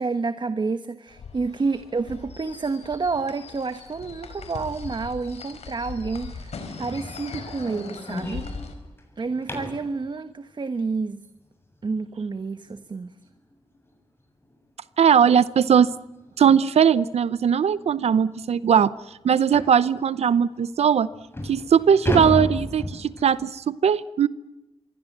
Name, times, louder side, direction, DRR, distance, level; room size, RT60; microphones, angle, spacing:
voice 1, 0.0-8.4 9.2-11.2 11.8-13.1, right 4 dB, 45° right, 10 dB, 1.3 m, -29 dB
sound 1, 1.1-8.7, left 5 dB, 85° left, 4.8 m, -40 dB
sound 2, 6.8-9.9 12.7-12.8 13.3-13.5 13.8-13.9 14.4-14.5 15.6-15.8 16.2-16.3 17.0-17.1 17.4-17.5 18.0-18.1 19.5-19.8 20.6-20.7 21.1-23.4, left 1 dB, 20° left, 7.5 m, -32 dB
voice 2, 15.0-15.9 16.4-18.9 19.2-21.1 21.4-24.3, right 7 dB, 80° right, 16 dB, 0.8 m, -19 dB
26.5 x 23.5 x 7.4 m, 0.99 s
cardioid pair, 75°, 11 cm